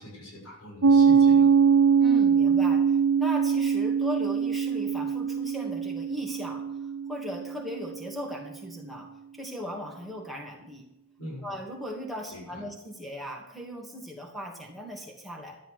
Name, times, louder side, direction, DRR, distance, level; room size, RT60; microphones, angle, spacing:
voice 1, 0.0-1.5 11.2-11.5 12.3-12.7, left 1 dB, 90° left, -2 dB, 6.3 m, -42 dB
Piano, 0.8-8.0, right 6 dB, 90° right, 0.7 m, -22 dB
voice 2, 2.0-6.6 7.1-9.1 9.3-10.9 11.4-15.6, equal, ahead, 0 dB, 2.5 m, -38 dB
13.5 x 11.0 x 6.5 m, 0.87 s
head